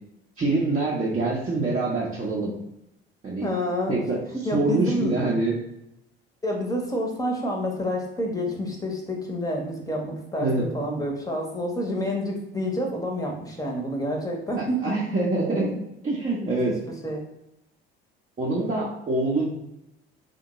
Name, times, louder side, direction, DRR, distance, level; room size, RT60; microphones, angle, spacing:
voice 1, 0.4-2.5 3.2-3.5 3.9-4.2 4.5-5.6 10.4-10.7 14.6-15.8 16.2-16.7 18.4-19.5, right 2 dB, 25° right, -6 dB, 0.8 m, -25 dB
voice 2, 3.4-3.9 4.3-5.2 6.4-15.0 16.4-16.7 17.0-17.2, equal, 10° left, 0 dB, 0.9 m, -28 dB
3.6 x 2.2 x 3.0 m, 0.85 s
figure-of-eight pair, 55°, 30 cm